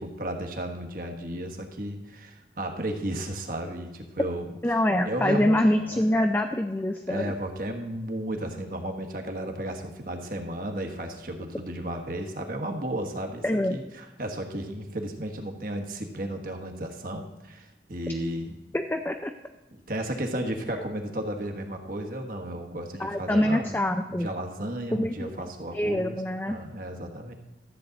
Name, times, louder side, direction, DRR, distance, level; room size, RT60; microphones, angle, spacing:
voice 1, 0.0-4.5 5.1-6.0 7.1-13.4 13.7-18.6 19.7-23.8 24.1-26.2 26.5-27.3, right 1 dB, 50° right, 3 dB, 1.4 m, -34 dB
voice 2, 4.6-7.3 13.4-13.8 18.7-19.3 23.0-24.3 24.9-26.6, left 1 dB, 10° left, 5 dB, 0.4 m, -25 dB
13.5 x 7.7 x 4.0 m, 1.1 s
head